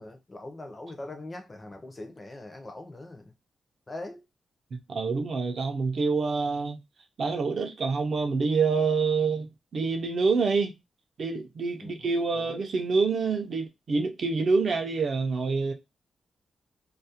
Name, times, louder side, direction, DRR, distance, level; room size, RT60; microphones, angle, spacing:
voice 1, 0.0-3.3 3.9-4.2 11.8-12.1 12.3-12.6, left 2 dB, 20° left, 0.4 m, -42 dB
voice 2, 4.7-6.8 7.2-10.7 11.2-15.7, right 4 dB, 45° right, 0.4 m, -27 dB
2.3 x 2.0 x 2.7 m
wide cardioid pair, 165°, 0 cm